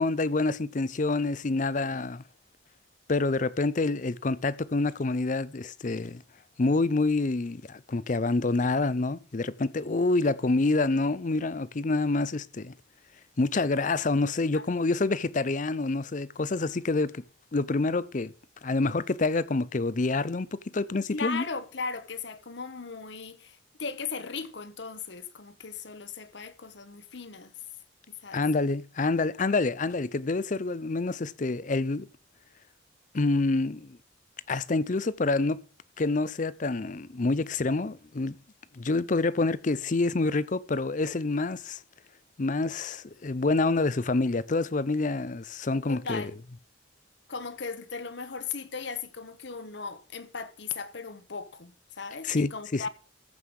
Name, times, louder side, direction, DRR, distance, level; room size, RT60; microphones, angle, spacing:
voice 1, 0.0-2.2 3.1-6.2 6.6-12.7 13.4-17.2 17.5-18.3 18.6-21.5 28.3-32.1 33.1-34.0 34.5-35.6 36.0-38.4 38.7-41.8 42.4-46.2 52.2-52.9, left 3 dB, 40° left, 0.6 m, -27 dB
voice 2, 21.1-27.5 28.1-28.4 45.9-46.3 47.3-52.9, left 5 dB, 65° left, 1.2 m, -37 dB
14.5 x 5.6 x 6.4 m
head